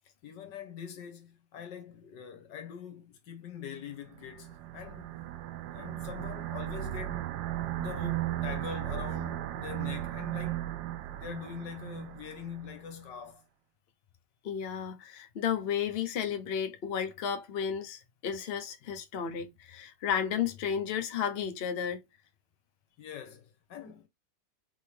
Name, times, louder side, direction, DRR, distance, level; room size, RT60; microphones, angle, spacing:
voice 1, 0.2-5.1 5.7-7.3 7.8-10.7 11.1-13.4 23.0-24.1, left 8 dB, 75° left, 1.6 m, -43 dB
sound 1, 4.1-12.8, right 14 dB, 90° right, 1.3 m, -36 dB
voice 2, 14.4-22.0, left 8 dB, 50° left, 0.8 m, -33 dB
3.9 x 3.6 x 3.3 m
omnidirectional pair, 1.9 m